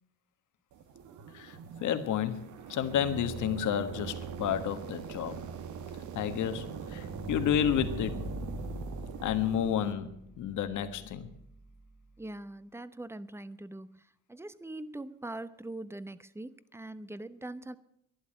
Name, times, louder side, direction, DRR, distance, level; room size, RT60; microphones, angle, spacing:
sound 1, 0.7-9.9, right 6 dB, 75° right, 1.4 m, -42 dB
voice 1, 1.3-5.4 6.1-8.2 9.2-11.3, left 9 dB, 80° left, 9 dB, 1.5 m, -31 dB
sound 2, 5.9-11.9, right 1 dB, 45° right, 3.5 m, -43 dB
voice 2, 12.2-14.0 14.3-17.8, right 2 dB, 10° right, 15 dB, 0.8 m, -42 dB
12.0 x 11.5 x 8.7 m, 0.74 s
cardioid pair, 90°, 30 cm